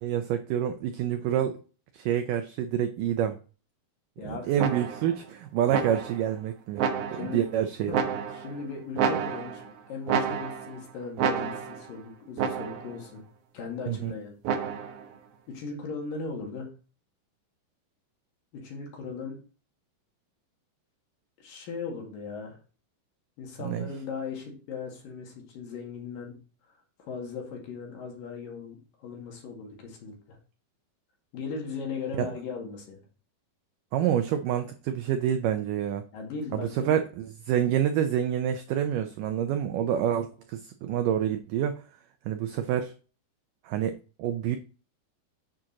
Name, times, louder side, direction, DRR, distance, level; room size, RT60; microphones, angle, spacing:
voice 1, 0.0-1.6 1.9-3.4 4.2-6.8 7.1-7.9 13.9-14.1 23.6-23.9 32.2-32.3 33.9-36.0 36.5-37.0 37.4-41.8 42.3-42.9 43.6-43.9 44.2-44.6, right 10 dB, 85° right, 7 dB, 1.9 m, -27 dB
voice 2, 4.2-4.6 7.1-7.4 7.9-13.2 13.5-14.4 14.6-14.9 15.5-16.8 18.5-19.4 21.4-22.6 23.4-26.4 27.0-30.4 31.3-33.0 36.1-36.9, left 4 dB, 65° left, 1 dB, 3.5 m, -38 dB
sound 1, 4.6-5.2 5.7-6.3 6.8-7.4 7.9-8.6 9.0-9.7 10.1-10.8 11.2-11.9 12.4-13.0 14.4-15.1, right 7 dB, 70° right, 2.0 m, -29 dB
8.6 x 7.6 x 2.8 m, 0.36 s
omnidirectional pair, 4.5 m